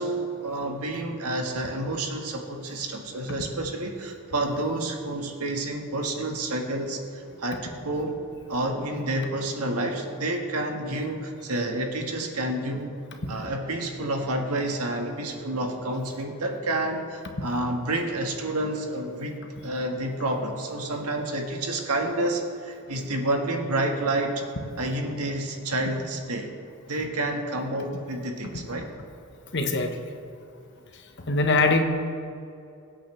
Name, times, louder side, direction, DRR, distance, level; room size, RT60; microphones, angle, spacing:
voice 1, 0.0-8.2 8.5-12.9 13.3-24.4 24.8-26.5 26.9-28.8, right 1 dB, 85° right, 2 dB, 1.6 m, -29 dB
voice 2, 29.5-29.9 31.3-31.8, left 3 dB, 50° left, 4 dB, 1.2 m, -21 dB
22.5 x 8.4 x 3.3 m, 2.5 s
head